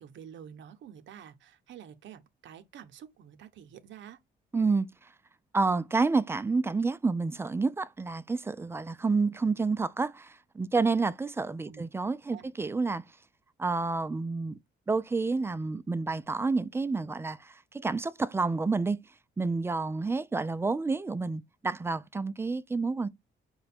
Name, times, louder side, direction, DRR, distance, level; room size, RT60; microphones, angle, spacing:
voice 1, 0.0-4.2 11.6-11.9 12.3-12.5, right 9 dB, 70° right, 0.7 m, -48 dB
voice 2, 4.5-4.9 5.5-13.0 13.6-14.5 14.9-19.0 19.4-23.1, right 3 dB, 10° right, 0.3 m, -29 dB
4.9 x 2.2 x 4.2 m
cardioid pair, 90°, 20 cm